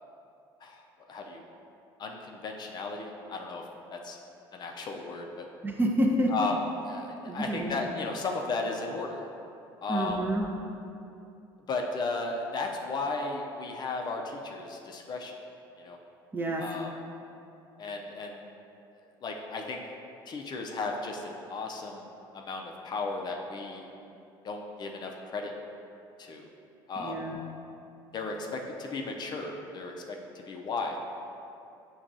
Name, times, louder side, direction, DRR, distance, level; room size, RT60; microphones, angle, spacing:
voice 1, 1.1-1.4 2.0-3.6 3.9-4.2 4.5-5.5 6.3-6.6 6.8-9.3 9.8-10.3 11.7-15.4 15.8-16.0 16.6-16.9 17.8-18.4 19.2-19.8 20.3-22.1 22.3-23.9 24.4-25.5 26.2-26.4 26.9-27.2 28.1-31.0, left 3 dB, 40° left, 1 dB, 0.4 m, -35 dB
voice 2, 5.6-6.3 7.3-7.7 9.9-10.5 16.3-16.6 27.0-27.4, right 1 dB, 15° right, 0 dB, 0.5 m, -28 dB
5.8 x 2.3 x 2.5 m, 2.7 s
supercardioid pair, 80°, 11 cm